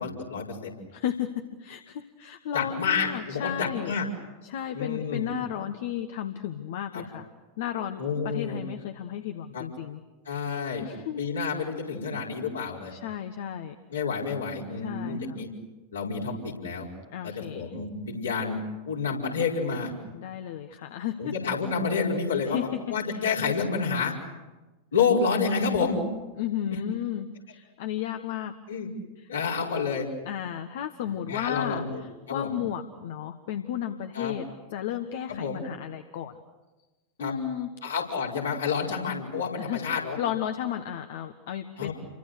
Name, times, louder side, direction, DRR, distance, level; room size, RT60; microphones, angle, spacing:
voice 1, 0.0-0.8 2.5-4.0 4.7-5.3 6.9-7.0 8.0-8.6 9.5-9.6 10.3-10.8 11.2-12.9 13.9-15.5 15.9-16.9 17.2-19.9 21.2-24.1 24.9-26.0 28.7-28.9 29.3-30.1 31.0-32.0 32.3-32.6 34.1-34.3 35.3-35.6 37.2-37.3 37.8-40.2 41.8-41.9, left 5 dB, 70° left, -3 dB, 5.3 m, -29 dB
voice 2, 0.9-3.9 4.4-7.3 7.6-10.0 10.8-11.2 12.9-13.7 14.8-15.4 17.1-17.7 20.1-21.3 22.5-22.6 23.1-23.2 26.4-28.5 30.2-36.4 37.2-37.7 39.6-39.8 40.2-41.9, left 10 dB, 55° left, 8 dB, 1.4 m, -33 dB
29.5 x 24.5 x 6.6 m, 1.2 s
figure-of-eight pair, 90°, 0 cm